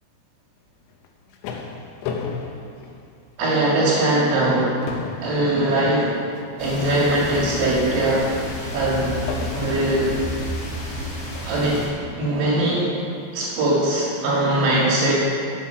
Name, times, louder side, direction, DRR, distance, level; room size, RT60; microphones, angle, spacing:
sound 1, 0.9-3.6 4.0-4.2 4.5-8.0 9.3-10.0 10.9-11.0 11.7-12.2, left 5 dB, 75° left, 2.8 m, -34 dB
voice 1, 3.4-4.9 5.2-6.2 6.6-8.3 8.7-9.2 9.5-10.2 11.4-11.9 12.2-12.9 13.3-15.1, right 1 dB, 70° right, -5 dB, 4.4 m, -21 dB
sound 2, 6.6-11.9, equal, 40° left, 2.6 m, -31 dB
13.5 x 8.5 x 5.8 m, 2.5 s
omnidirectional pair, 5.5 m